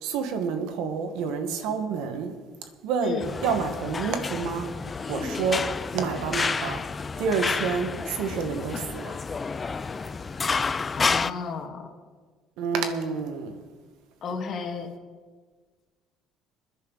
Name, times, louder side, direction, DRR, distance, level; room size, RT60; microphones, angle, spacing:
voice 1, 0.0-2.3 2.8-4.7 5.1-5.6 5.9-6.8 7.2-9.1 12.6-13.6, right 5 dB, 80° right, 7 dB, 1.7 m, -28 dB
sound 1, 3.2-11.3, left 4 dB, 30° left, 0.5 m, -30 dB
voice 2, 10.9-11.8 14.2-14.9, left 5 dB, 55° left, 4 dB, 2.2 m, -32 dB
21.5 x 10.0 x 4.2 m, 1.5 s
supercardioid pair, 85°, 0 cm